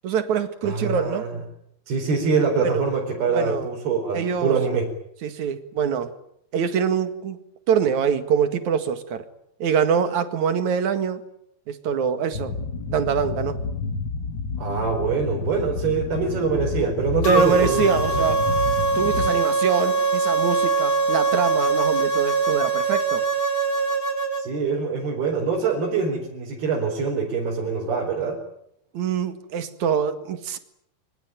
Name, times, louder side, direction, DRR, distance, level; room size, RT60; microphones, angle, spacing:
voice 1, 0.0-1.3 2.6-2.9 3.3-3.7 4.1-4.6 5.2-6.1 6.5-7.4 7.7-9.2 9.6-11.2 11.7-12.5 12.9-13.6 17.2-18.4 18.9-23.2 28.9-30.6, right 7 dB, 50° right, 10 dB, 2.9 m, -24 dB
voice 2, 0.6-1.4 1.9-4.9 14.6-17.8 19.3-19.4 24.4-28.4, right 5 dB, 70° right, -1 dB, 6.3 m, -24 dB
sound 1, 12.3-19.4, left 4 dB, 75° left, 1.0 m, -30 dB
sound 2, 17.2-24.4, right 4 dB, 25° left, 2.4 m, -22 dB
25.5 x 25.5 x 9.2 m, 0.74 s
omnidirectional pair, 4.7 m